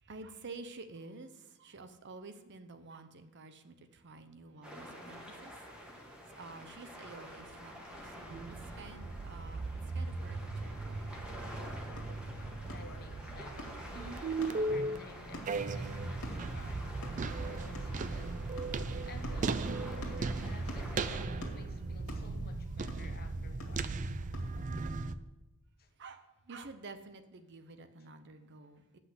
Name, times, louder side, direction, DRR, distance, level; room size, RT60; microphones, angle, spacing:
voice 1, 0.0-5.5 5.9-6.0 6.3-11.1 12.7-12.8 26.0-29.0, right 3 dB, 55° right, 0.7 m, -50 dB
sound 1, 4.6-21.2, equal, 5° right, 1.6 m, -49 dB
sound 2, 8.3-25.2, right 3 dB, 35° right, 0.4 m, -37 dB
sound 3, 11.9-24.6, left 1 dB, 90° left, 2.0 m, -51 dB
voice 2, 12.6-18.8 19.0-24.1 25.8-25.9, left 3 dB, 45° left, 0.9 m, -54 dB
8.0 x 5.9 x 7.8 m
head